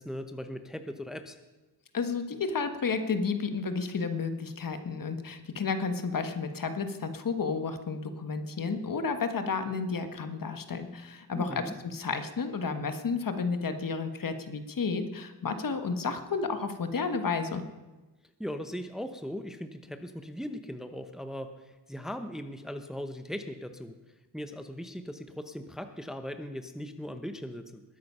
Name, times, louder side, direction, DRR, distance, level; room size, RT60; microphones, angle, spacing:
voice 1, 0.0-1.4 11.3-11.7 18.4-23.9 24.3-27.8, equal, ahead, 8 dB, 0.9 m, -39 dB
voice 2, 1.9-11.6 11.9-17.6, left 4 dB, 50° left, 8 dB, 1.4 m, -32 dB
21.0 x 9.4 x 5.6 m, 1.2 s
wide cardioid pair, 105°, 43 cm